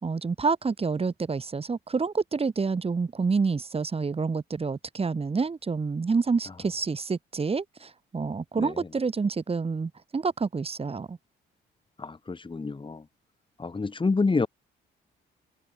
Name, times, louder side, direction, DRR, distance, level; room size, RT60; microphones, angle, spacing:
voice 1, 0.0-11.2, right 4 dB, 30° right, 2.3 m, -28 dB
voice 2, 8.6-8.9 12.0-13.0 13.6-14.5, left 4 dB, 25° left, 3.2 m, -28 dB
open air
cardioid pair, 90°, 20 cm